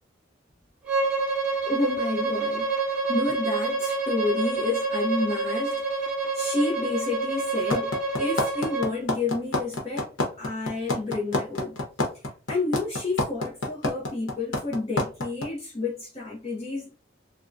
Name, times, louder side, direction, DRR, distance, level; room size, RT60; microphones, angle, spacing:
Bowed string instrument, 0.9-8.9, right 3 dB, 5° right, 1.1 m, -27 dB
voice 1, 1.6-2.7 3.1-6.0 6.3-10.1 10.4-11.8 12.5-16.9, left 3 dB, 30° left, 0.6 m, -30 dB
sound 1, 7.7-15.5, left 2 dB, 70° left, 0.9 m, -26 dB
3.5 x 2.1 x 2.6 m
head